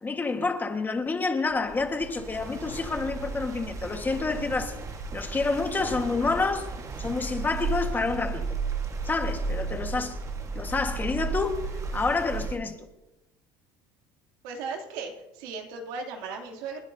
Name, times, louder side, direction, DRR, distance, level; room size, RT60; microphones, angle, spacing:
voice 1, 0.0-4.8 5.1-6.7 7.0-8.5 9.0-10.2 10.5-11.6 11.9-12.7, left 3 dB, 20° left, 1.6 m, -28 dB
sound 1, 1.5-12.5, right 4 dB, 30° right, 1.6 m, -34 dB
voice 2, 14.4-16.8, right 4 dB, 85° right, 2.9 m, -36 dB
29.0 x 10.5 x 2.8 m
cardioid pair, 120°, 10 cm